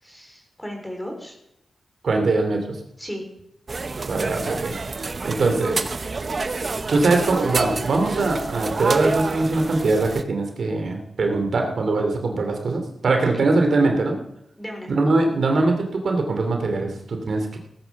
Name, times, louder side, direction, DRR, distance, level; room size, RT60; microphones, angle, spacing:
voice 1, 0.0-1.4 3.0-3.3 13.4-13.5 14.6-14.9, equal, 5° left, 2 dB, 3.9 m, -35 dB
voice 2, 2.0-2.8 4.1-4.8 5.2-5.8 6.9-14.2 14.9-17.6, right 3 dB, 60° right, 4 dB, 2.5 m, -22 dB
sound 1, 3.7-10.2, right 3 dB, 35° right, 0.7 m, -28 dB
17.5 x 9.3 x 7.0 m, 0.79 s
wide cardioid pair, 170°, 0 cm